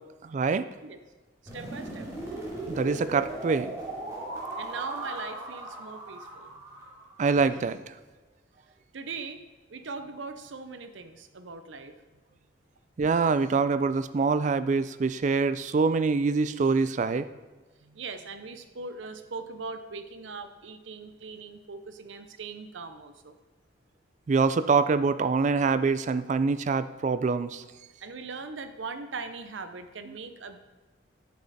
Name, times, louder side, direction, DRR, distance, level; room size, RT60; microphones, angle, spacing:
voice 1, 0.2-0.7 2.7-3.7 7.2-7.8 13.0-17.3 24.3-27.6, right 4 dB, 40° right, 13 dB, 0.3 m, -25 dB
sound 1, 1.5-7.4, right 2 dB, 15° right, 2.5 m, -38 dB
voice 2, 1.5-2.1 4.6-6.6 8.9-11.9 17.8-23.4 28.0-30.6, right 4 dB, 75° right, 9 dB, 0.7 m, -40 dB
8.2 x 6.4 x 4.1 m, 1.3 s
head